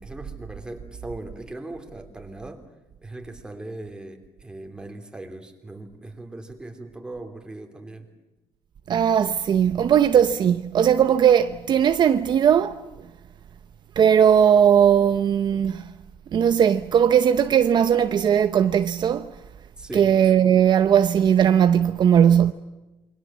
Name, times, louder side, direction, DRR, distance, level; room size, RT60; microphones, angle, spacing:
voice 1, 0.0-2.6 3.0-8.1 19.8-20.1, right 2 dB, 10° right, 3.1 m, -39 dB
voice 2, 8.9-12.8 14.0-15.9 16.3-19.3 19.9-22.5, right 8 dB, 45° right, 0.8 m, -18 dB
28.0 x 24.0 x 7.4 m
cardioid pair, 155°, 11 cm